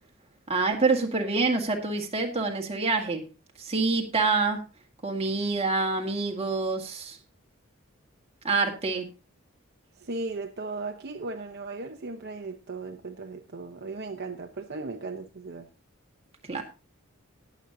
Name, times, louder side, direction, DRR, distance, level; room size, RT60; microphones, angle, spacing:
voice 1, 0.5-3.2 3.6-4.6 5.0-7.2 8.4-9.1 16.5-16.6, right 3 dB, 30° right, 1.8 m, -26 dB
voice 2, 10.0-15.7 16.5-16.6, right 3 dB, 55° right, 0.9 m, -37 dB
20.0 x 7.2 x 2.7 m
head